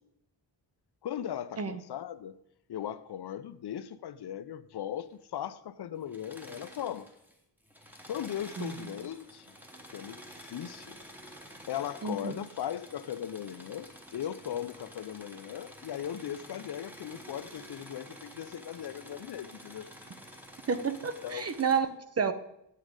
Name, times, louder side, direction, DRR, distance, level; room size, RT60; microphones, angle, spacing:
voice 1, 1.0-2.4 2.7-7.1 8.1-9.5 9.9-11.0 11.7-19.9 21.2-21.5, left 10 dB, 65° left, 14 dB, 0.6 m, -38 dB
Engine / Mechanisms, 6.0-7.4 7.6-21.8, equal, 5° right, 1.1 m, -50 dB
voice 2, 12.0-12.3 20.7-21.9 22.2-22.3, right 6 dB, 35° right, 12 dB, 0.6 m, -30 dB
8.6 x 8.0 x 5.1 m, 0.78 s
wide cardioid pair, 175°, 42 cm